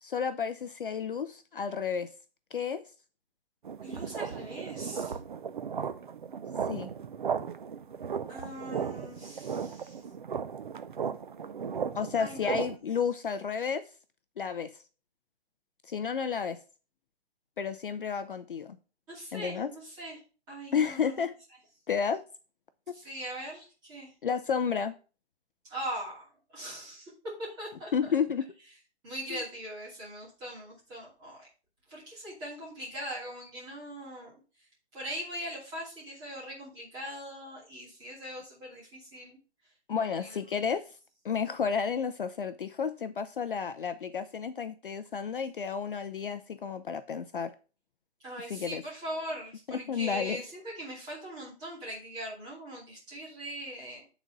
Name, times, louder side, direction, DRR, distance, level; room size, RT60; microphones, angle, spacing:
voice 1, 0.0-2.1 2.5-2.8 6.7-6.9 11.9-13.9 14.4-14.8 15.9-16.6 17.6-18.8 19.3-19.7 20.7-21.3 21.9-22.2 22.9-23.0 24.2-24.9 27.9-28.4 29.3-29.4 39.9-40.8 41.2-47.5 48.5-48.8 49.7-50.4, left 6 dB, 50° left, 0.5 m, -31 dB
sound 1, 3.6-12.8, right 7 dB, 45° right, 0.6 m, -36 dB
voice 2, 3.8-5.2 8.3-10.0 12.2-12.8 19.1-20.2 20.5-21.2 22.9-24.1 25.6-28.1 29.0-31.5 31.9-34.4 34.9-39.4 40.0-40.4 48.2-54.1, right 1 dB, 10° right, 2.6 m, -41 dB
9.1 x 4.1 x 5.2 m
hypercardioid pair, 175°, 33 cm